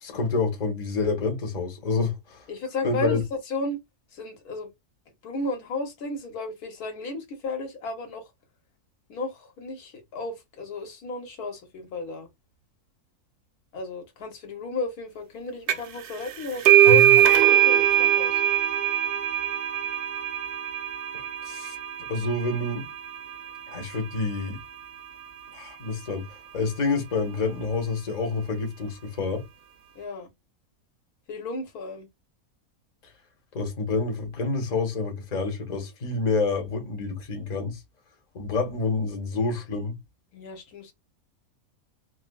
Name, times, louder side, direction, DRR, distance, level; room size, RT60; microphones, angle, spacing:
voice 1, 0.0-2.5 2.8-3.2 16.9-17.2 21.4-21.8 22.1-22.9 23.7-24.6 25.5-26.2 26.5-29.4 33.5-37.8 38.3-40.0, left 3 dB, 35° left, 0.9 m, -28 dB
voice 2, 2.5-3.8 4.1-4.7 5.2-8.3 9.1-12.3 13.7-18.4 29.9-30.3 31.3-32.1 40.3-40.9, left 3 dB, 90° left, 1.5 m, -33 dB
sound 1, 15.7-16.0 16.3-23.6, right 11 dB, 65° right, 0.5 m, -21 dB
4.8 x 2.0 x 2.3 m
omnidirectional pair, 1.5 m